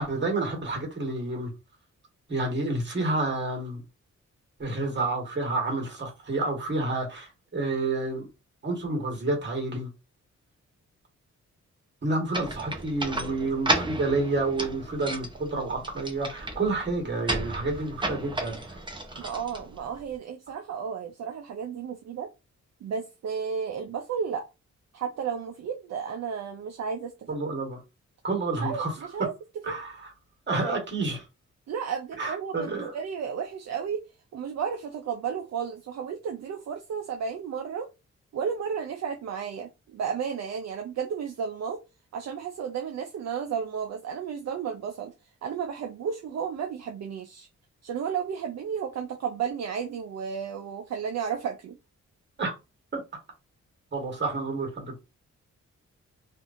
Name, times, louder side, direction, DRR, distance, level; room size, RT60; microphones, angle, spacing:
voice 1, 0.0-1.5 2.3-3.8 4.6-8.3 8.6-9.9 12.0-18.8 19.1-19.2 27.3-27.8 28.2-28.9 29.6-30.1 30.5-31.2 32.2-32.9 52.4-52.5 52.9-53.0 53.9-55.0, right 2 dB, 40° right, 1.4 m, -29 dB
sound 1, 12.3-20.2, right 2 dB, 15° right, 0.7 m, -33 dB
voice 2, 19.2-22.3 22.8-24.5 24.9-27.1 28.6-28.8 29.1-29.3 29.7-29.8 30.5-30.8 31.7-34.0 34.3-37.9 38.3-41.8 42.1-45.1 45.4-47.5 47.8-51.8, right 7 dB, 60° right, 0.5 m, -33 dB
2.7 x 2.5 x 2.5 m
cardioid pair, 80°, 30 cm